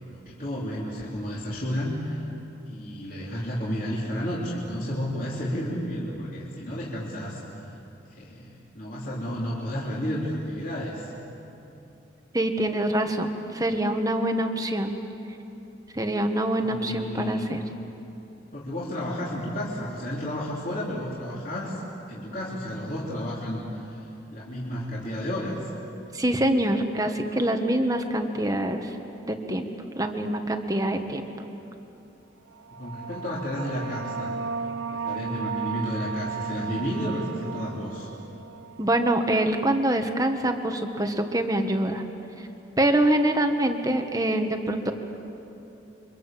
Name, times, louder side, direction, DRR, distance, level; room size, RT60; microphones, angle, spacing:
voice 1, 0.0-2.2 2.7-7.8 8.1-11.1 16.6-17.5 18.5-21.8 22.1-24.0 24.3-25.6 32.7-34.3 34.9-38.1, equal, 45° left, -6 dB, 3.7 m, -32 dB
voice 2, 12.3-15.0 15.9-17.6 26.1-28.9 29.3-29.7 30.0-31.3 38.8-42.0 42.8-44.9, right 1 dB, 20° right, 5 dB, 1.5 m, -25 dB
sound 1, 32.6-39.8, right 5 dB, 85° right, 0.9 m, -35 dB
29.5 x 25.0 x 7.6 m, 2.9 s
head